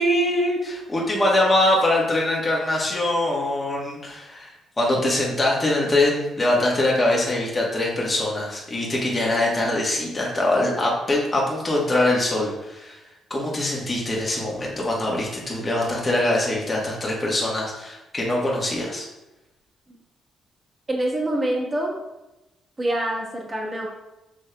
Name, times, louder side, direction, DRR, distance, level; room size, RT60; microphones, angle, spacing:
voice 1, 0.0-13.0 13.3-19.0, left 1 dB, 25° left, -3 dB, 1.3 m, -23 dB
voice 2, 20.9-22.0 22.8-23.9, right 1 dB, 25° right, -2 dB, 1.2 m, -25 dB
6.3 x 3.5 x 2.2 m, 0.97 s
cardioid pair, 90°, 0 cm